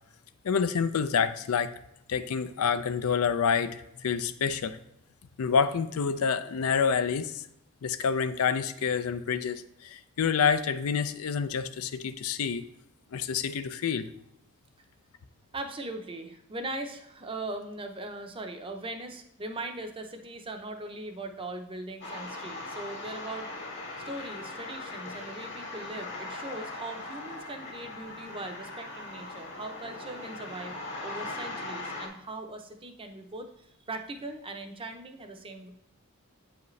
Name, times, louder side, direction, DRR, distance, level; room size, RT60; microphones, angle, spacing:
voice 1, 0.4-1.7 2.1-4.8 5.4-7.4 7.8-12.7 13.1-14.1, left 6 dB, 70° left, 11 dB, 0.4 m, -28 dB
voice 2, 15.5-23.5 24.0-30.7 31.0-35.7, right 2 dB, 25° right, 5 dB, 0.6 m, -40 dB
sound 1, 22.0-32.1, left 2 dB, 55° left, 1.6 m, -40 dB
8.0 x 4.9 x 3.2 m, 0.80 s
head